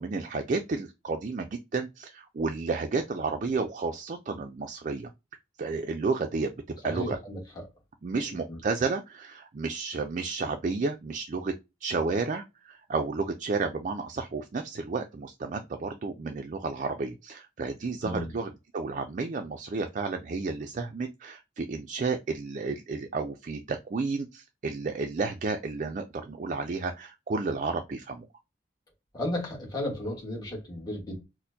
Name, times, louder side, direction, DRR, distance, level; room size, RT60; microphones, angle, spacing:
voice 1, 0.0-5.1 5.6-6.5 6.8-7.2 8.0-11.5 11.8-28.3, right 4 dB, 40° right, 0.4 m, -32 dB
voice 2, 6.8-7.4 8.2-8.6 18.0-18.3 29.1-31.2, left 1 dB, 20° left, 1.3 m, -34 dB
4.2 x 2.1 x 2.6 m
head